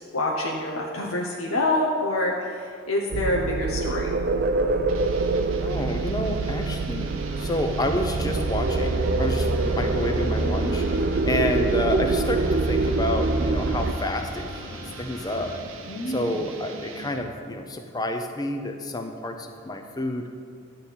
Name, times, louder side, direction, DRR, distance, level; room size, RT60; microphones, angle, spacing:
voice 1, 0.1-4.1 15.9-16.5, left 1 dB, 85° left, -2 dB, 0.9 m, -26 dB
sound 1, 3.1-13.9, right 3 dB, 50° right, 0.5 m, -25 dB
sound 2, 4.9-17.4, right 3 dB, 75° right, 0.8 m, -41 dB
voice 2, 5.6-10.9 11.2-15.5 16.1-20.3, left 1 dB, 20° left, 5 dB, 0.6 m, -29 dB
sound 3, 6.2-15.6, left 2 dB, 65° left, 1.4 m, -42 dB
11.5 x 4.3 x 8.2 m, 2.3 s
head